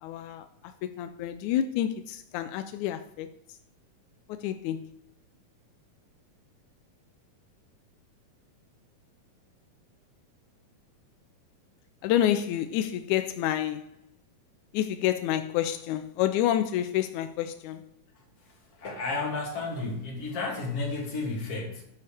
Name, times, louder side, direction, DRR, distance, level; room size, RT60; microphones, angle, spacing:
voice 1, 0.0-3.6 4.3-5.0 12.0-13.9 14.7-17.9, left 11 dB, 85° left, 1.7 m, -29 dB
voice 2, 18.4-21.8, left 3 dB, 45° left, 3.3 m, -32 dB
11.5 x 9.8 x 3.4 m
omnidirectional pair, 4.0 m